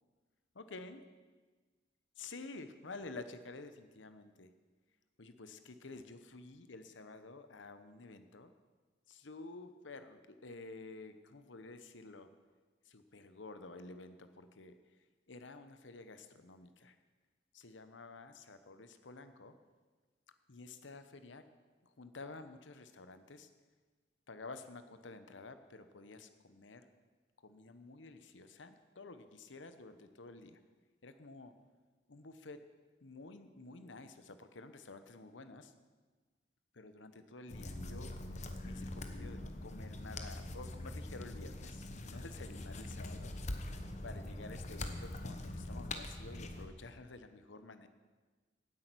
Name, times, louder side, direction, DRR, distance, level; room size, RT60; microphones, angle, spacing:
voice 1, 0.5-1.0 2.2-4.5 5.2-8.5 9.1-12.3 12.8-14.8 15.3-17.0 17.5-19.6 20.5-21.5 21.8-23.5 24.3-26.9 27.4-30.6 31.0-31.6 32.1-32.7 33.0-35.7 36.7-43.3 44.0-47.9, left 3 dB, 80° left, 10 dB, 1.0 m, -51 dB
sound 1, 37.5-46.7, left 1 dB, 40° left, 1.0 m, -43 dB
17.0 x 8.6 x 6.2 m, 1.3 s
head